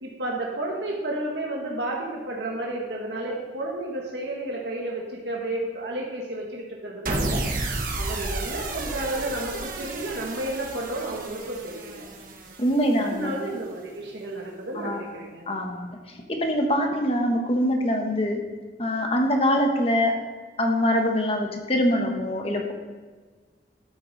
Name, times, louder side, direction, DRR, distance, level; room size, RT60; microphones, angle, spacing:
voice 1, 0.0-7.7 8.0-12.1 13.0-15.4, right 1 dB, 75° right, -2 dB, 1.6 m, -32 dB
sound 1, 7.1-13.4, right 2 dB, 50° right, 1.5 m, -32 dB
voice 2, 12.6-13.3 14.7-15.0 15.5-18.4 18.8-20.1 20.6-22.7, equal, 35° left, 2 dB, 1.4 m, -24 dB
12.5 x 8.7 x 4.2 m, 1.4 s
head